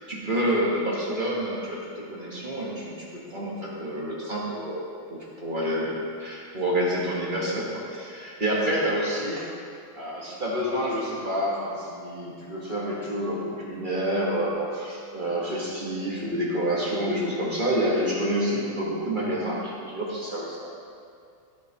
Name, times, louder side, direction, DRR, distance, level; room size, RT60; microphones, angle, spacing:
voice 1, 0.1-9.5 9.9-20.7, equal, 30° right, -5 dB, 1.1 m, -28 dB
12.5 x 7.8 x 2.9 m, 2.4 s
omnidirectional pair, 2.4 m